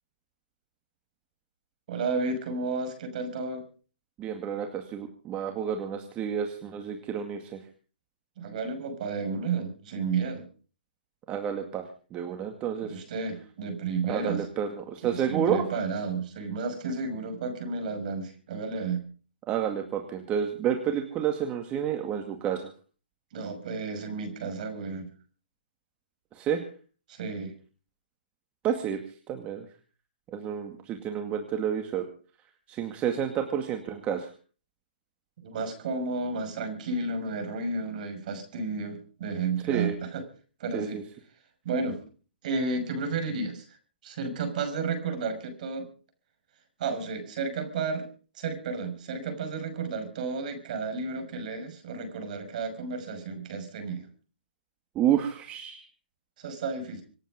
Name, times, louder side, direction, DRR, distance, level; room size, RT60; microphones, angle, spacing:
voice 1, 1.9-3.6 8.4-10.5 12.8-14.4 15.0-19.0 23.3-25.1 27.1-27.5 35.4-40.2 40.6-41.0 41.6-42.0 42.4-43.6 44.0-45.9 46.8-48.1 48.3-54.1 56.4-57.0, right 4 dB, 50° right, 8 dB, 5.9 m, -32 dB
voice 2, 4.2-7.6 11.3-11.8 12.1-13.0 14.1-15.6 19.5-22.7 26.4-26.6 28.6-29.0 29.3-29.6 30.3-32.1 32.7-34.3 39.7-40.0 40.7-41.0 55.0-55.8, right 8 dB, 25° right, 4 dB, 2.1 m, -30 dB
26.5 x 9.0 x 5.2 m, 0.39 s
hypercardioid pair, 135°, 5 cm